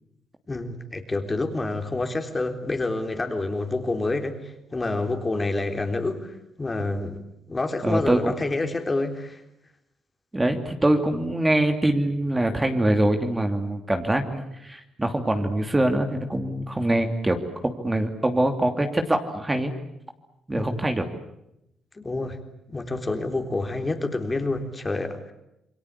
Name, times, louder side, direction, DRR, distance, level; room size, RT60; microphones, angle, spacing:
voice 1, 0.5-7.2 7.5-9.4 20.5-20.8 21.9-22.4 22.7-25.3, left 2 dB, 25° left, 6 dB, 3.7 m, -28 dB
voice 2, 7.8-8.3 10.3-17.4 17.6-19.7 20.5-21.1, right 1 dB, 15° right, 5 dB, 2.8 m, -24 dB
28.0 x 22.0 x 8.4 m, 0.84 s
supercardioid pair, 75°, 0 cm